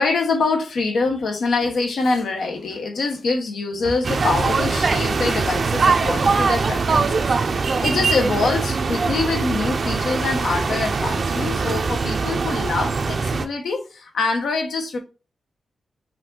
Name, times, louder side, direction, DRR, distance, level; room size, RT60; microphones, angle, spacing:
voice 1, 0.0-15.0, left 3 dB, 80° left, 1.1 m, -24 dB
sound 1, 4.0-13.5, right 4 dB, 55° right, 0.6 m, -22 dB
5.1 x 2.7 x 3.8 m
cardioid pair, 90°, 0 cm